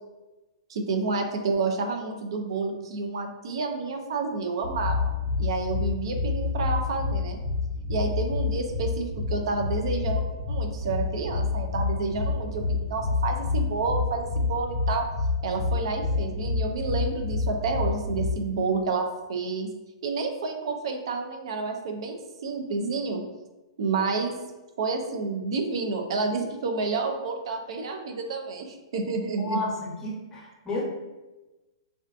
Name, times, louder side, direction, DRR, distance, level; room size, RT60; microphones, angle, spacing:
voice 1, 0.7-5.1 5.4-7.4 7.9-10.2 10.5-15.1 15.4-19.7 20.0-23.2 23.8-24.4 24.8-29.6, right 4 dB, 70° right, 4 dB, 0.4 m, -29 dB
sound 1, 4.6-18.3, left 4 dB, 55° left, 0.5 m, -28 dB
voice 2, 29.4-30.8, left 2 dB, 20° left, -4 dB, 0.8 m, -32 dB
2.4 x 2.4 x 2.3 m, 1.1 s
hypercardioid pair, 125°, 3 cm